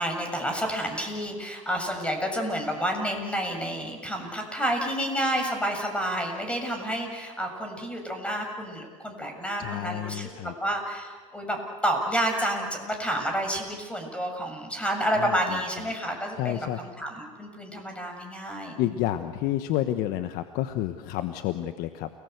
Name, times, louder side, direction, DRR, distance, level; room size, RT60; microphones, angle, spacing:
voice 1, 0.0-10.3 10.6-18.8, equal, 5° left, 4 dB, 7.2 m, -29 dB
voice 2, 9.6-10.5 15.1-15.6 16.4-16.8 18.8-22.1, left 13 dB, 60° left, 9 dB, 1.3 m, -30 dB
30.0 x 20.0 x 8.1 m, 1.5 s
hypercardioid pair, 85°, 18 cm